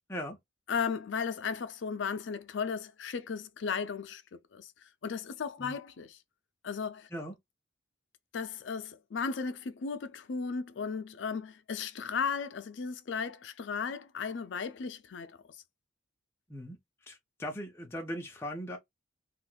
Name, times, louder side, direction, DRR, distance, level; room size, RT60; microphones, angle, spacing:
voice 1, 0.7-4.7 5.0-6.2 6.6-7.1 8.3-15.3, left 5 dB, 65° left, 0.4 m, -35 dB
voice 2, 17.1-18.8, equal, 10° left, 0.5 m, -39 dB
2.5 x 2.2 x 3.8 m
head